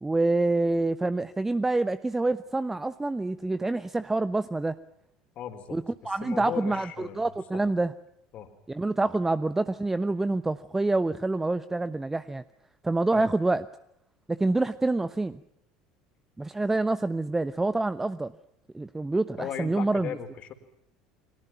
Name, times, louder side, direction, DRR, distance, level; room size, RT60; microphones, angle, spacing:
voice 1, 0.0-4.8 5.7-6.9 7.2-7.9 8.7-12.4 12.8-13.6 14.3-15.4 16.4-18.3 18.7-20.1, right 2 dB, 10° right, 13 dB, 1.0 m, -27 dB
voice 2, 5.4-7.2 7.5-7.6 8.3-8.5 13.1-13.3 19.4-20.5, left 9 dB, 45° left, 9 dB, 3.9 m, -37 dB
29.5 x 24.0 x 5.9 m, 0.76 s
figure-of-eight pair, 65°, 3 cm